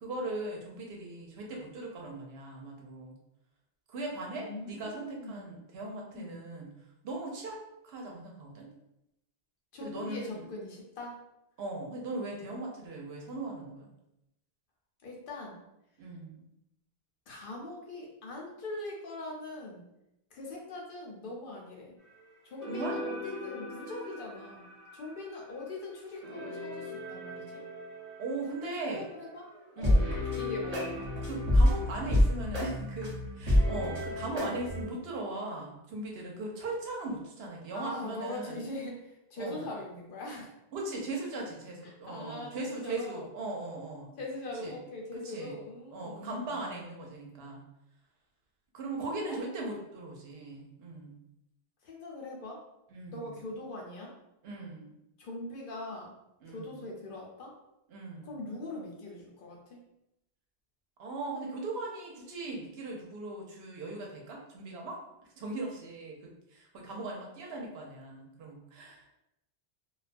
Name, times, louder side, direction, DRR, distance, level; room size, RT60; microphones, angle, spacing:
voice 1, 0.0-3.2 3.9-6.7 7.0-7.6 7.8-8.7 9.8-10.5 11.6-13.9 16.0-16.4 22.7-23.0 28.2-29.1 29.8-30.1 31.2-38.6 39.4-39.7 40.7-44.1 44.6-44.8 45.1-45.5 45.9-47.6 48.7-51.1 52.9-53.4 54.4-54.9 56.4-56.8 57.9-58.4 61.0-65.0 65.4-66.2 66.5-69.1, right 2 dB, 75° right, 0 dB, 0.8 m, -39 dB
voice 2, 4.3-5.6 6.1-6.4 9.7-11.2 15.0-15.6 17.3-19.8 20.3-21.9 22.4-24.7 24.9-27.4 28.5-29.5 29.8-30.0 30.4-31.1 37.7-40.5 41.8-43.2 44.2-46.7 49.1-49.4 51.8-52.6 53.1-54.1 55.2-56.1 56.5-57.5 58.2-59.8, left 2 dB, 60° left, -2 dB, 0.7 m, -41 dB
sound 1, 22.6-25.3 26.2-29.2 29.5-29.6 29.8-34.8, left 1 dB, 40° right, 0.9 m, -30 dB
2.3 x 2.2 x 2.5 m, 0.85 s
omnidirectional pair, 1.1 m